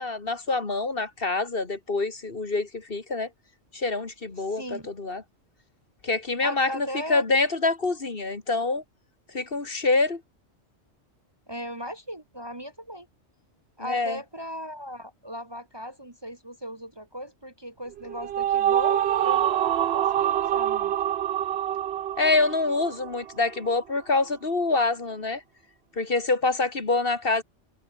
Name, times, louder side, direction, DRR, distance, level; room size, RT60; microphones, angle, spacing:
voice 1, 0.0-3.3 3.7-5.2 6.0-8.8 9.3-10.2 13.8-14.2 22.2-25.4 26.0-27.4, left 3 dB, 50° left, 2.3 m, -26 dB
voice 2, 4.5-4.9 6.4-7.2 11.5-13.1 13.8-20.9, equal, 20° right, 1.4 m, -38 dB
sound 1, 17.9-23.4, right 11 dB, 65° right, 0.8 m, -25 dB
omnidirectional pair, 1.2 m